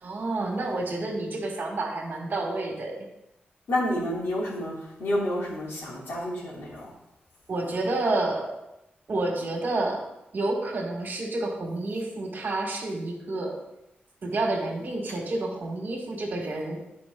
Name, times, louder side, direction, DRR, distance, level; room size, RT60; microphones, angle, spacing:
voice 1, 0.0-3.1 7.5-8.5 9.1-10.0 10.3-13.6 14.2-16.8, right 2 dB, 60° right, 0 dB, 1.9 m, -29 dB
voice 2, 3.7-6.9, left 1 dB, 75° left, -5 dB, 3.2 m, -29 dB
9.8 x 5.1 x 3.9 m, 0.88 s
wide cardioid pair, 95°, 4 cm